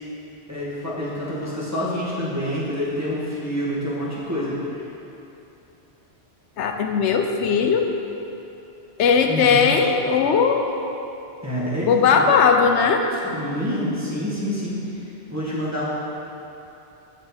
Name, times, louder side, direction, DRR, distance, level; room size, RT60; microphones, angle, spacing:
voice 1, 0.5-4.6 9.3-9.8 11.4-12.3 13.2-14.8 15.3-15.9, equal, 15° right, -8 dB, 1.7 m, -27 dB
voice 2, 6.6-7.9 9.0-10.7 11.9-13.0, left 6 dB, 85° left, 4 dB, 1.0 m, -18 dB
7.8 x 6.5 x 4.4 m, 2.9 s
omnidirectional pair, 1.2 m